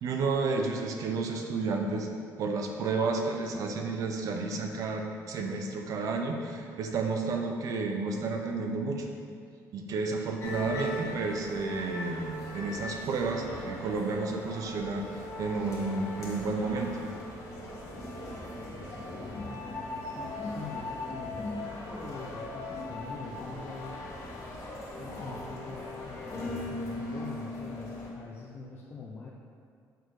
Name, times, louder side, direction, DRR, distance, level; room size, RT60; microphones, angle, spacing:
voice 1, 0.0-2.1 2.4-9.1 9.7-17.0, right 3 dB, 60° right, 3 dB, 0.8 m, -31 dB
sound 1, 10.4-28.1, left 1 dB, 50° left, 1.5 m, -39 dB
voice 2, 19.1-24.0 25.0-29.3, left 4 dB, 30° left, -3 dB, 0.7 m, -44 dB
6.3 x 4.7 x 4.8 m, 2.2 s
cardioid pair, 130°, 7 cm